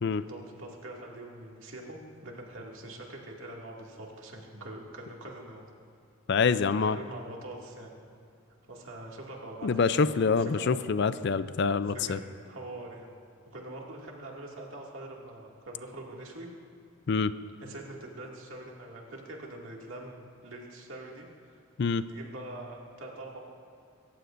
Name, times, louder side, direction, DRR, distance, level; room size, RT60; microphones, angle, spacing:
voice 1, 0.1-5.7 6.7-7.9 8.7-10.8 11.9-13.1 13.5-16.5 17.6-21.6 22.0-23.4, right 1 dB, 65° right, -1 dB, 2.3 m, -44 dB
voice 2, 6.3-7.0 9.6-12.2 17.1-17.3 21.8-22.0, left 5 dB, 50° left, 14 dB, 0.4 m, -26 dB
26.0 x 14.5 x 2.6 m, 2.4 s
head